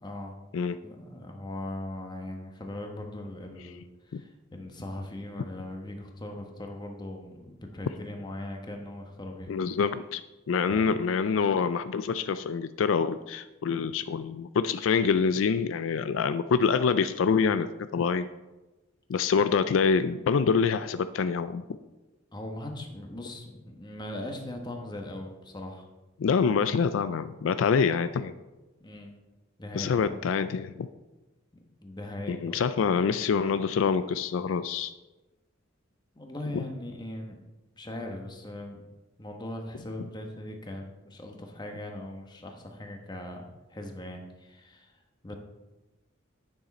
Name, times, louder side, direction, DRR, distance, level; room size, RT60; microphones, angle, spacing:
voice 1, 0.0-0.3 0.8-9.5 10.7-10.9 22.3-25.9 28.8-29.1 29.6-30.2 31.5-32.6 36.1-37.4 37.7-38.8 39.2-44.9 45.2-45.3, left 1 dB, 20° left, 3 dB, 1.2 m, -39 dB
voice 2, 9.5-10.2 10.5-18.3 19.1-21.6 26.2-28.3 29.7-30.9 32.3-34.9, left 5 dB, 80° left, 12 dB, 0.4 m, -26 dB
9.8 x 6.4 x 4.2 m, 1.1 s
head